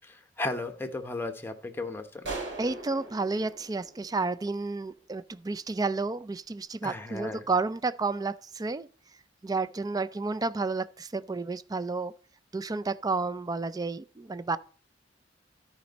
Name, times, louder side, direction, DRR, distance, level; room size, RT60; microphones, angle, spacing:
voice 1, 0.0-2.3 6.8-7.5, left 2 dB, 10° left, 1.0 m, -35 dB
sound 1, 2.2-4.8, right 3 dB, 70° right, 3.5 m, -40 dB
voice 2, 2.6-8.9 9.4-12.1 12.5-14.6, right 3 dB, 20° right, 0.4 m, -31 dB
13.0 x 5.2 x 4.1 m
head